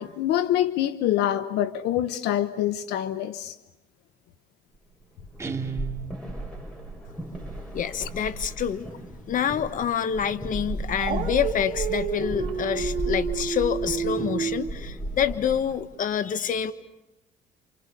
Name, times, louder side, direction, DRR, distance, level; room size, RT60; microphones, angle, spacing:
voice 1, 0.0-3.5, left 12 dB, 85° left, 1.1 m, -25 dB
sound 1, 5.0-15.8, right 1 dB, 5° left, 6.9 m, -35 dB
Guitar, 5.4-6.7, right 6 dB, 15° right, 2.6 m, -34 dB
voice 2, 7.7-8.9 9.3-16.7, left 8 dB, 50° left, 1.4 m, -27 dB
Dog, 11.0-14.7, right 7 dB, 55° right, 3.0 m, -30 dB
29.0 x 27.5 x 6.8 m
cardioid pair, 110°, 17 cm